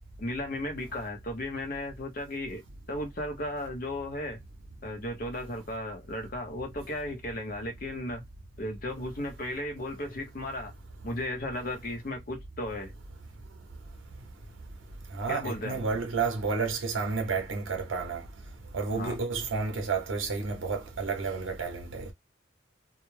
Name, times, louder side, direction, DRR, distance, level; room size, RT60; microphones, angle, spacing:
voice 1, 0.2-2.6 2.9-4.4 4.8-8.2 8.6-10.7 11.0-12.9 15.3-15.8 18.9-19.2, left 1 dB, 45° left, 0.6 m, -35 dB
voice 2, 15.1-18.2 18.7-22.1, right 4 dB, 85° right, 0.6 m, -31 dB
2.2 x 2.0 x 3.0 m
head